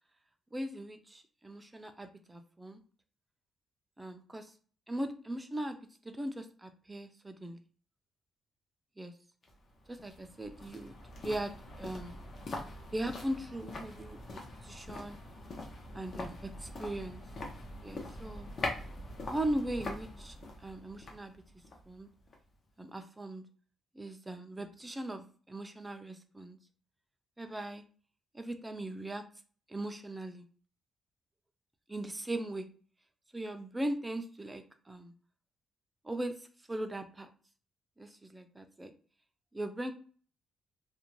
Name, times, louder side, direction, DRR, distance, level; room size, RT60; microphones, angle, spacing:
voice 1, 0.5-2.8 4.0-4.5 4.9-5.8 6.0-7.6 9.0-9.1 9.9-10.9 11.2-12.2 12.9-15.2 15.9-17.2 17.8-18.5 19.3-20.4 20.6-21.4 21.9-22.1 22.8-23.5 23.9-26.6 27.4-27.8 28.3-29.2 29.7-30.5 31.9-32.7 33.3-35.1 36.0-37.3 38.0-38.9 39.5-39.9, right 1 dB, 15° right, 7 dB, 0.4 m, -39 dB
sound 1, 9.4-22.6 22.9-23.0, left 2 dB, 45° left, 0.7 m, -43 dB
2.5 x 2.1 x 2.9 m, 0.41 s
cardioid pair, 125°, 0 cm